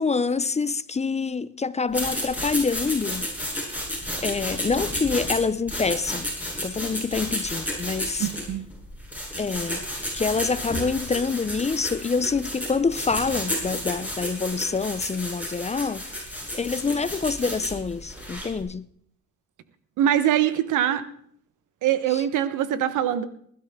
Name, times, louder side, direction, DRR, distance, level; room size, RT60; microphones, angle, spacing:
voice 1, 0.0-3.3 4.2-6.3 6.6-8.3 9.4-9.8 10.1-16.0 16.5-18.9 22.1-22.2, left 4 dB, 20° left, 0.5 m, -26 dB
sound 1, 1.9-18.6, equal, 5° right, 8.0 m, -32 dB
voice 2, 8.2-8.6 20.0-21.0 21.8-23.3, right 11 dB, 85° right, 1.2 m, -23 dB
20.0 x 12.5 x 3.7 m
cardioid pair, 90°, 30 cm